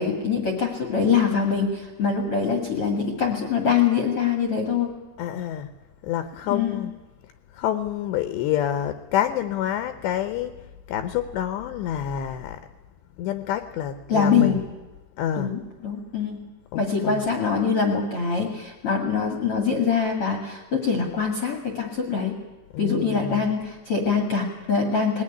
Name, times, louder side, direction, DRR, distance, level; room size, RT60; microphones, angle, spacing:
voice 1, 0.0-4.9 6.5-6.8 14.1-14.6 15.4-16.4 16.7-22.4 22.8-25.2, left 6 dB, 60° left, 3 dB, 1.4 m, -24 dB
voice 2, 5.2-5.7 6.0-7.0 7.2-12.6 13.2-14.6 15.2-15.5 16.7-17.3 22.7-23.6, left 10 dB, 80° left, 10 dB, 2.5 m, -28 dB
20.0 x 17.5 x 9.9 m, 1.2 s
omnidirectional pair, 6.0 m